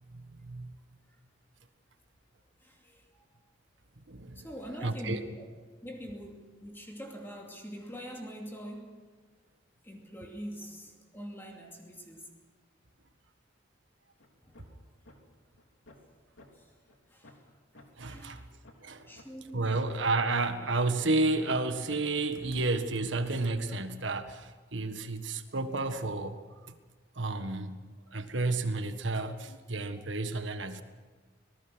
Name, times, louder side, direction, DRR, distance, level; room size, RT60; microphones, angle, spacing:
voice 1, 0.1-0.7 4.1-4.5 4.8-5.2 18.0-18.5 18.8-19.1 19.5-26.8 27.1-27.8 28.1-30.8, right 2 dB, 75° right, 1.6 m, -31 dB
voice 2, 2.6-3.0 4.3-5.4 5.8-9.0 9.8-12.3 14.5-14.6 16.5-16.7 17.1-17.4 18.0-18.5 18.9-19.8 30.0-30.1, equal, 10° left, 2.7 m, -44 dB
sound 1, 14.2-14.3 14.5-14.8 15.0-15.2 15.6-16.1 16.4-16.5 16.9-17.0 17.2-17.4 17.7-17.9 18.3-18.4 18.6-18.8 19.1-19.3 19.7-20.6 21.0-21.1 21.4-21.5 21.9-22.0 22.4-22.9, left 2 dB, 85° left, 3.5 m, -55 dB
26.0 x 19.5 x 6.2 m
head